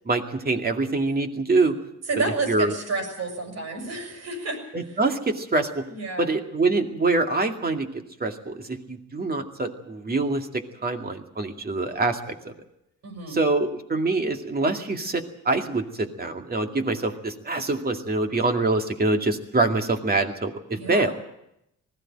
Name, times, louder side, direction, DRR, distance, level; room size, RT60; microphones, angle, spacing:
voice 1, 0.0-1.8 2.5-2.7 4.7-5.8 6.2-7.9 8.2-12.2 12.4-12.5 13.3-21.1, right 3 dB, 30° right, 4 dB, 2.4 m, -25 dB
voice 2, 2.1-4.6 4.9-5.0 5.9-6.3 13.0-13.4 20.7-21.1, right 3 dB, 60° right, 4 dB, 6.7 m, -30 dB
20.0 x 16.0 x 8.9 m, 0.82 s
cardioid pair, 90°, 30 cm